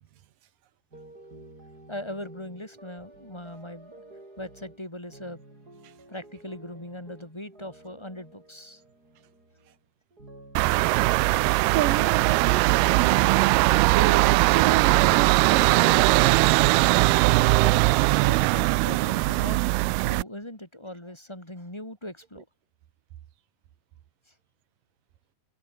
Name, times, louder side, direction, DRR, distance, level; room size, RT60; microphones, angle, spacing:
sound 1, 0.9-9.8 10.1-14.7 15.2-18.2, right 2 dB, 20° right, 7.9 m, -51 dB
voice 1, 1.9-4.0 4.4-5.4 6.1-8.8 17.5-22.5, left 1 dB, 5° left, 5.6 m, -40 dB
sound 2, 10.6-20.2, right 23 dB, 85° right, 2.2 m, -20 dB
voice 2, 11.7-16.4, right 12 dB, 60° right, 2.7 m, -31 dB
open air
omnidirectional pair, 5.0 m